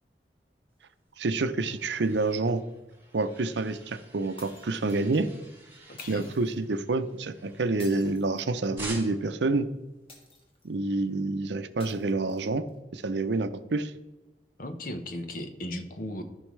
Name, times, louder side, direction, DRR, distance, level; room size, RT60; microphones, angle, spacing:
sound 1, 1.0-8.3 8.8-9.4, right 2 dB, 15° right, 2.4 m, -47 dB
voice 1, 1.2-2.6 3.1-5.3 6.1-9.7 10.6-12.7 12.9-13.9, right 3 dB, 80° right, 11 dB, 0.6 m, -28 dB
sound 2, 4.4-5.2 6.0-6.6 7.8-9.0 10.1-10.7 11.8-12.7, left 2 dB, 35° left, 1.8 m, -52 dB
voice 2, 5.9-6.3 14.6-16.2, left 1 dB, 50° left, 7 dB, 1.0 m, -36 dB
14.0 x 5.6 x 3.2 m, 1.1 s
head